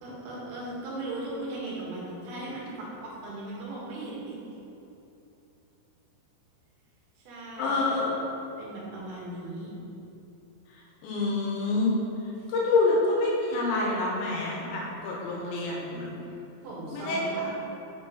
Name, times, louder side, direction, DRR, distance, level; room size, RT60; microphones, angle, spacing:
voice 1, 0.0-4.3 7.3-8.1 8.6-9.7 12.4-12.5 16.6-17.5, right 2 dB, 85° right, -5 dB, 4.4 m, -38 dB
voice 2, 7.6-8.1 11.0-11.9 12.5-16.1 16.9-17.5, left 3 dB, 75° left, -3 dB, 3.2 m, -27 dB
8.3 x 5.2 x 5.1 m, 2.9 s
omnidirectional pair, 5.6 m